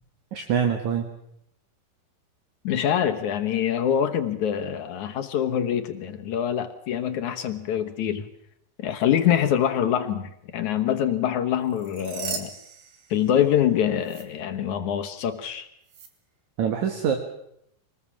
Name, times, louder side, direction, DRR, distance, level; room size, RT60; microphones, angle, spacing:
voice 1, 0.3-1.1 16.6-17.2, right 7 dB, 55° right, 5 dB, 2.5 m, -24 dB
voice 2, 2.6-8.3 8.8-12.5 13.1-15.7, left 9 dB, 65° left, 7 dB, 2.0 m, -25 dB
sound 1, 11.6-13.7 14.0-14.2 15.9-16.1, right 7 dB, 80° right, 4.5 m, -38 dB
25.0 x 19.5 x 7.3 m, 0.74 s
omnidirectional pair, 4.8 m